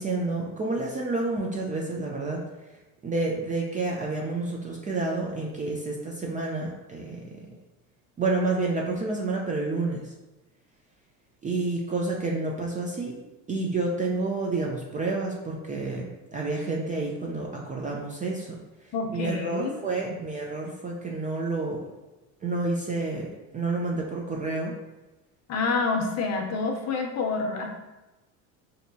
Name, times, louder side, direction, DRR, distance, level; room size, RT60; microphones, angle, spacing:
voice 1, 0.0-2.4 3.0-7.3 8.2-10.1 11.4-13.2 13.5-18.5 19.1-21.8 22.4-23.3 23.5-24.7, right 3 dB, 20° right, -1 dB, 0.4 m, -29 dB
voice 2, 18.9-19.8 20.1-20.2 25.5-27.7, left 4 dB, 35° left, 2 dB, 0.7 m, -28 dB
4.5 x 2.6 x 2.6 m, 1.1 s
supercardioid pair, 95°, 43 cm